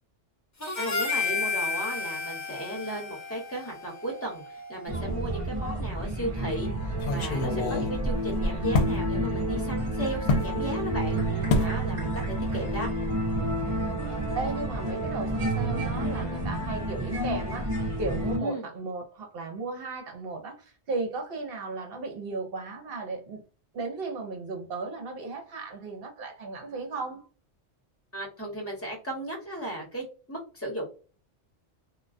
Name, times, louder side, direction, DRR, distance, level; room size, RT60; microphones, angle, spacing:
Harmonica, 0.6-5.1, left 4 dB, 30° left, 0.3 m, -32 dB
voice 1, 0.8-6.7 7.1-12.9 18.4-18.7 28.1-30.9, right 1 dB, 15° left, 1.0 m, -35 dB
sound 1, 4.9-18.4, right 1 dB, 35° right, 0.6 m, -30 dB
sound 2, 5.1-5.7 6.0-6.1 6.9-9.0 10.3-10.5 11.5-11.8 12.1-12.4 12.7-12.9, left 2 dB, 70° left, 0.8 m, -27 dB
voice 2, 14.1-23.4 23.7-27.2, right 3 dB, 60° right, 0.9 m, -35 dB
2.2 x 2.2 x 2.4 m
omnidirectional pair, 1.1 m